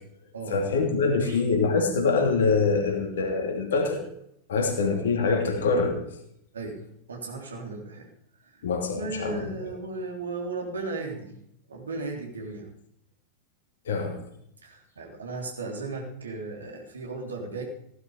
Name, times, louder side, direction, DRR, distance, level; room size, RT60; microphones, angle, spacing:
voice 1, 0.5-4.0 4.5-6.0 8.6-9.7 13.9-14.2, left 4 dB, 60° left, 1 dB, 2.9 m, -24 dB
voice 2, 7.1-8.1 8.5-8.6 9.0-11.4 11.7-12.7 14.6-17.6, right 3 dB, 70° right, 1 dB, 3.5 m, -35 dB
16.0 x 11.5 x 5.0 m, 0.73 s
figure-of-eight pair, 90°, 0 cm